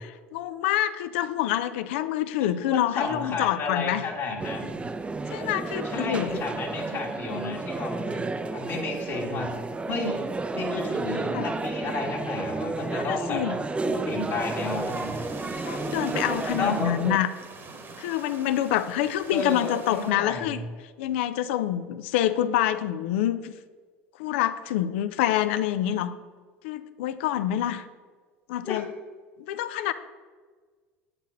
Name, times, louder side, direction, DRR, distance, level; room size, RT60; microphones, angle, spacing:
voice 1, 0.3-4.0 5.3-6.4 11.3-11.5 13.0-13.6 15.7-17.3 18.0-20.6 21.0-23.5 24.2-26.1 26.6-27.8 28.5-28.9 29.4-29.9, left 12 dB, 75° left, 13 dB, 0.4 m, -26 dB
voice 2, 2.4-4.7 5.8-8.2 8.5-9.5 9.9-10.2 10.5-13.4 13.8-15.4 16.6-16.9 19.3-20.6 28.6-28.8, left 3 dB, 55° left, -5 dB, 1.6 m, -32 dB
sound 1, 4.4-17.2, right 3 dB, 15° right, 0.5 m, -31 dB
sound 2, 14.2-20.1, right 3 dB, 35° right, 1.2 m, -43 dB
8.3 x 4.2 x 5.4 m, 1.5 s
hypercardioid pair, 75°, 7 cm